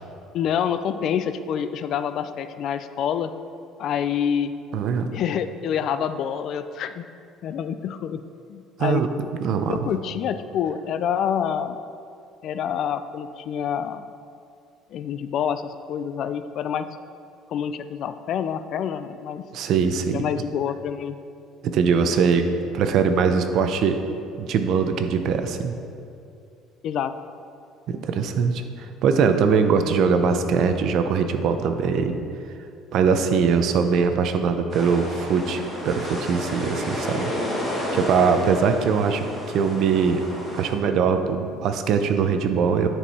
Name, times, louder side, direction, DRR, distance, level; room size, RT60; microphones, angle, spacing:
voice 1, 0.3-3.3 3.8-4.5 5.1-7.0 7.4-8.2 8.5-9.0 9.7-11.8 12.4-14.1 14.9-16.9 17.5-19.4 20.1-21.2 26.8-27.1, left 8 dB, 50° left, 11 dB, 0.3 m, -27 dB
voice 2, 4.7-5.2 8.8-9.1 9.4-9.8 19.5-20.2 21.6-24.0 24.4-25.8 27.9-32.2 32.9-37.3 37.9-40.2 40.5-42.9, right 6 dB, 55° right, 8 dB, 0.6 m, -22 dB
sound 1, 34.7-40.7, equal, 5° left, 1.6 m, -31 dB
9.9 x 4.6 x 4.2 m, 2.4 s
cardioid pair, 140°, 0 cm